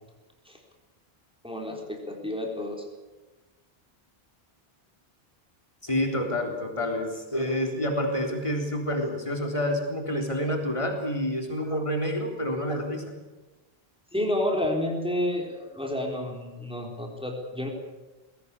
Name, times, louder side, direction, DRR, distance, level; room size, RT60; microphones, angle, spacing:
voice 1, 1.4-2.9 14.1-17.7, left 1 dB, 5° right, 1 dB, 3.8 m, -30 dB
voice 2, 5.8-13.1, left 1 dB, 30° left, 2 dB, 4.0 m, -28 dB
21.0 x 17.5 x 8.5 m, 1.2 s
omnidirectional pair, 1.0 m